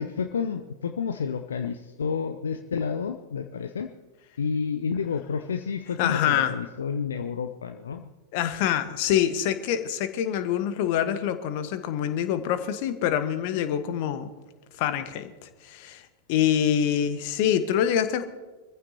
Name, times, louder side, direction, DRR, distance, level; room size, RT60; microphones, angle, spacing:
voice 1, 0.0-3.9 4.4-8.1, left 6 dB, 70° left, 8 dB, 0.6 m, -30 dB
voice 2, 6.0-6.6 8.3-14.3 14.8-18.2, left 10 dB, 45° left, 10 dB, 1.3 m, -25 dB
24.0 x 15.0 x 2.9 m, 1.2 s
figure-of-eight pair, 90°, 0 cm